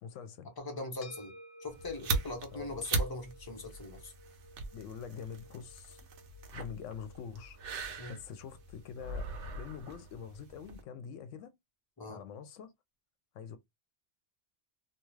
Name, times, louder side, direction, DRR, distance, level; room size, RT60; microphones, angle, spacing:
voice 1, 0.0-0.5 2.5-2.7 4.7-6.1 6.5-11.5 12.1-12.7 13.3-13.6, left 7 dB, 85° left, 0.9 m, -45 dB
voice 2, 0.6-1.3 1.6-4.1 8.0-8.2 12.0-12.2, left 2 dB, 20° left, 0.9 m, -41 dB
sound 1, 1.0-9.6, equal, 60° left, 1.0 m, -57 dB
sound 2, 1.7-10.8, right 3 dB, 75° right, 1.0 m, -40 dB
2.6 x 2.3 x 3.1 m
omnidirectional pair, 1.2 m